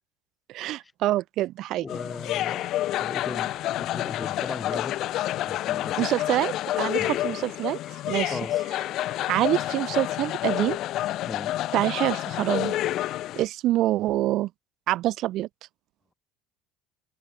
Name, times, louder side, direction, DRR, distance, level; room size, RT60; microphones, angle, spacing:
voice 1, 0.5-1.9 6.0-7.8 8.1-8.4 9.3-10.8 11.7-12.7 13.4-14.5 14.9-15.5, right 15 dB, 60° right, 2.1 m, -26 dB
voice 2, 1.8-2.7 3.0-5.0 5.4-6.2 7.0-7.1 7.8-7.9 8.3-8.6 11.3-11.6 12.9-13.0, left 4 dB, 20° left, 4.4 m, -37 dB
sound 1, 1.9-13.4, left 14 dB, 55° left, 1.9 m, -29 dB
supercardioid pair, 100°, 0 cm